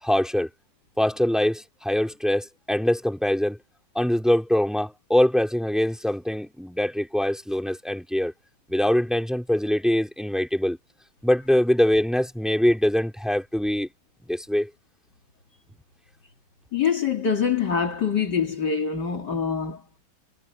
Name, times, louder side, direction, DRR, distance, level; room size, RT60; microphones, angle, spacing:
voice 1, 0.0-0.5 1.0-3.6 3.9-8.3 8.7-10.8 11.2-13.9 14.3-14.7, left 1 dB, ahead, 4.6 m, -23 dB
voice 2, 16.7-19.8, left 6 dB, 60° left, 3.0 m, -24 dB
omnidirectional pair, 2.1 m